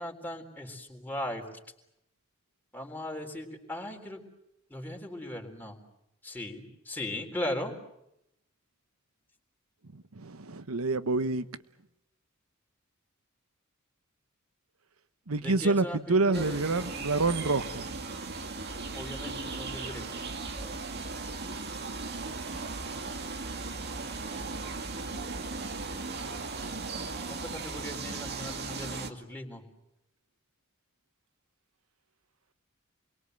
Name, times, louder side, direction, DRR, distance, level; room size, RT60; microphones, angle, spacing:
voice 1, 0.0-1.5 2.7-4.2 4.7-5.8 6.2-7.7 15.4-17.4 18.9-20.2 20.5-20.8 27.3-29.6, left 1 dB, 10° left, 3.8 m, -38 dB
voice 2, 9.9-11.5 15.3-17.9, right 3 dB, 85° right, 1.2 m, -27 dB
sound 1, 16.3-29.1, right 3 dB, 50° right, 2.0 m, -37 dB
28.5 x 22.5 x 7.9 m
head